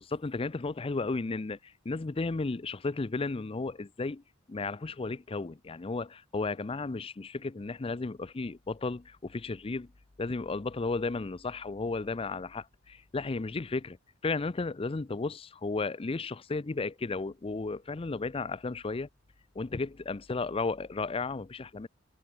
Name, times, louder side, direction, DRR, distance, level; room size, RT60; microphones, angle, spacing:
voice 1, 0.1-4.2 4.5-9.9 10.2-14.0 14.2-19.1 19.5-21.9, left 3 dB, 30° left, 0.5 m, -34 dB
head